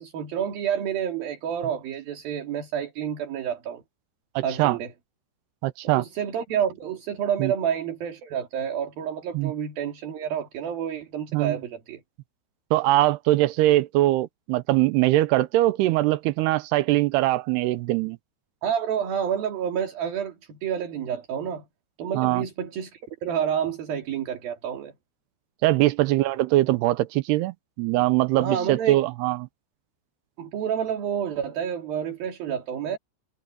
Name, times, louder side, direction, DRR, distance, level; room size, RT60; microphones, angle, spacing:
voice 1, 0.0-3.8 4.4-4.9 5.8-12.0 18.6-21.6 22.0-24.9 28.4-29.0 30.4-33.0, right 8 dB, 55° right, 4.1 m, -29 dB
voice 2, 4.4-4.8 5.6-6.0 7.4-7.5 9.3-9.5 11.3-11.6 12.7-18.2 22.1-22.4 25.6-29.5, right 17 dB, 80° right, 2.4 m, -22 dB
omnidirectional pair, 5.3 m